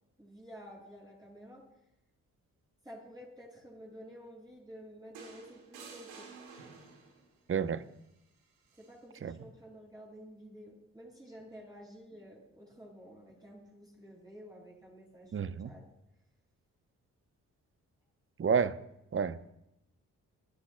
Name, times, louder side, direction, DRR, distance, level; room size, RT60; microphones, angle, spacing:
voice 1, 0.2-1.6 2.8-6.3 8.8-15.4 15.6-15.8, equal, 10° right, 6.1 m, -51 dB
sound 1, 5.1-7.3 8.7-8.9, right 5 dB, 85° right, 2.0 m, -51 dB
voice 2, 7.5-7.8 9.2-9.3 15.3-15.7 18.4-18.8 19.1-19.5, right 6 dB, 35° right, 0.8 m, -30 dB
28.0 x 9.9 x 2.2 m
hypercardioid pair, 45°, 36 cm